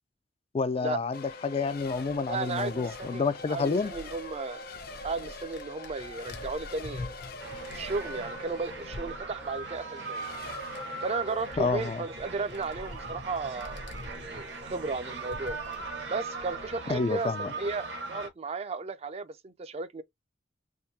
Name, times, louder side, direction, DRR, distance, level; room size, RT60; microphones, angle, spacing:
voice 1, 0.5-3.9 11.6-12.0 16.9-17.5, left 4 dB, 35° left, 0.3 m, -29 dB
Race car auto racing / Accelerating revving vroom / Mechanisms, 1.1-13.6, left 2 dB, 55° left, 0.8 m, -44 dB
voice 2, 2.3-3.2 3.5-4.6 5.0-7.1 7.7-10.3 11.0-15.6 16.1-20.0, right 4 dB, 35° right, 0.4 m, -34 dB
sound 1, 3.9-9.5 10.4-10.5 10.7-16.7, left 1 dB, 85° left, 0.9 m, -46 dB
sound 2, 7.4-18.3, right 3 dB, 70° right, 1.1 m, -40 dB
3.6 x 2.6 x 2.7 m
head